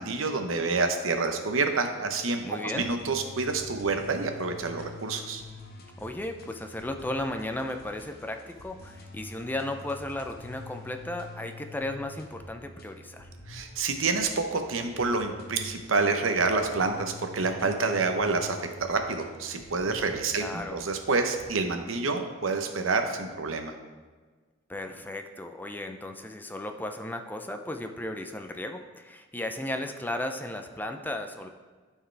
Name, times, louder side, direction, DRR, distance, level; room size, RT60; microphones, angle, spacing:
voice 1, 0.0-5.4 13.5-18.6 18.9-23.7, right 3 dB, 80° right, 5 dB, 0.8 m, -28 dB
voice 2, 2.4-2.9 6.0-13.3 20.4-20.8 24.7-31.5, left 1 dB, 10° left, 6 dB, 0.4 m, -35 dB
sound 1, 2.7-21.5, left 3 dB, 50° left, 1.0 m, -47 dB
12.0 x 4.7 x 3.3 m, 1.4 s
head